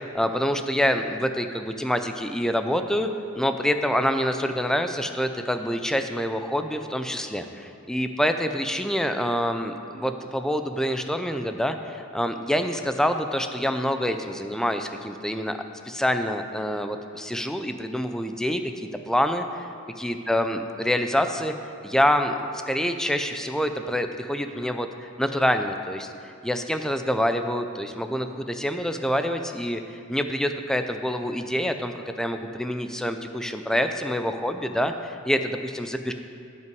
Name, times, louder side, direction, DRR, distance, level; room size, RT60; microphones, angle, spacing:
voice 1, 0.1-3.1 3.4-15.6 15.9-19.7 20.0-22.3 22.7-26.1 26.4-36.1, equal, 5° left, 7 dB, 0.4 m, -26 dB
16.0 x 5.6 x 4.7 m, 2.4 s
head